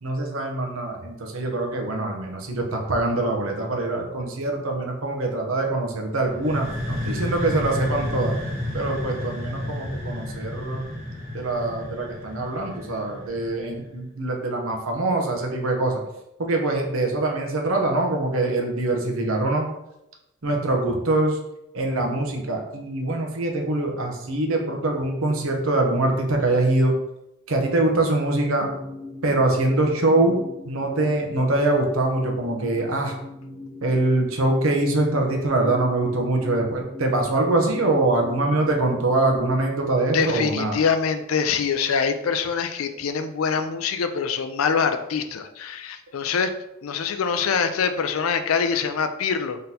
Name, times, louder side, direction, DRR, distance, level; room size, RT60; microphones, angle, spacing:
voice 1, 0.0-8.3 8.7-10.9 11.3-16.0 16.4-19.7 20.4-21.4 21.7-26.9 27.5-28.7 29.2-33.1 33.8-40.8, right 2 dB, 80° right, 2 dB, 0.8 m, -23 dB
sound 1, 6.3-13.9, left 1 dB, 35° right, 1.5 m, -31 dB
sound 2, 28.4-39.4, left 1 dB, 10° left, 1.2 m, -39 dB
voice 2, 40.1-46.5 46.8-49.6, left 6 dB, 85° left, 9 dB, 0.4 m, -24 dB
3.8 x 3.8 x 2.8 m, 0.87 s
head